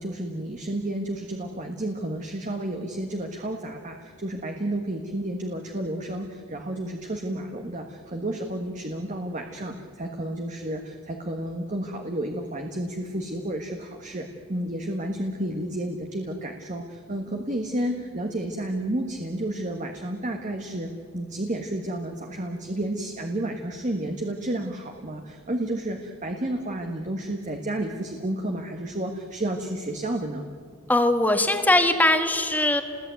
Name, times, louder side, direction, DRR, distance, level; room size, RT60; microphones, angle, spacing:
voice 1, 0.0-30.5, right 1 dB, 35° right, 3 dB, 1.5 m, -31 dB
voice 2, 30.9-32.8, left 1 dB, 10° left, 6 dB, 1.5 m, -20 dB
28.5 x 20.5 x 9.4 m, 2.2 s
head